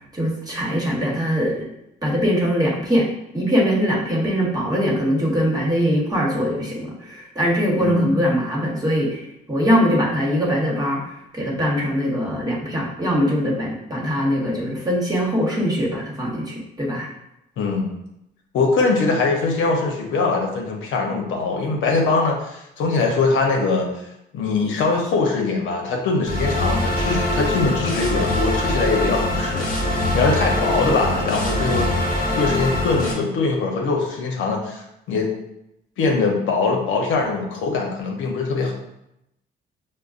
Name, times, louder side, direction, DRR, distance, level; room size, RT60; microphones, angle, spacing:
voice 1, 0.1-1.7 2.0-3.1 3.3-9.2 9.5-17.1, equal, 20° right, -3 dB, 1.1 m, -22 dB
voice 2, 7.8-8.1 17.6-17.9 18.5-23.9 24.3-31.9 32.3-35.3 36.0-38.7, left 3 dB, 80° left, 0 dB, 0.7 m, -22 dB
sound 1, 26.3-33.1, left 1 dB, 50° left, 1.2 m, -23 dB
5.1 x 2.1 x 2.4 m, 0.84 s
cardioid pair, 90°, 20 cm